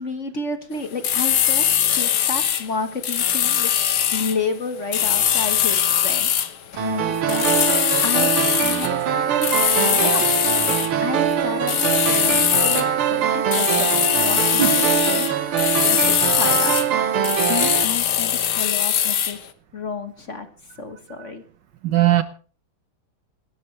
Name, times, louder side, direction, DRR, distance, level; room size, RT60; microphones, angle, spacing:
voice 1, 0.0-6.3 6.7-10.2 10.7-10.8 11.0-15.3 15.8-19.4 19.7-20.5 20.8-21.4, left 4 dB, 40° left, 8 dB, 1.4 m, -31 dB
sound 1, 1.0-2.7 3.0-4.4 4.9-6.5 7.3-8.9 9.4-11.0 11.7-12.9 13.5-16.9 17.2-19.4, left 10 dB, 75° left, 2.0 m, -21 dB
sound 2, 6.8-17.8, right 8 dB, 90° right, 2.0 m, -23 dB
voice 2, 21.8-22.2, right 13 dB, 65° right, 12 dB, 1.4 m, -20 dB
27.0 x 12.5 x 3.2 m, 0.39 s
omnidirectional pair, 2.3 m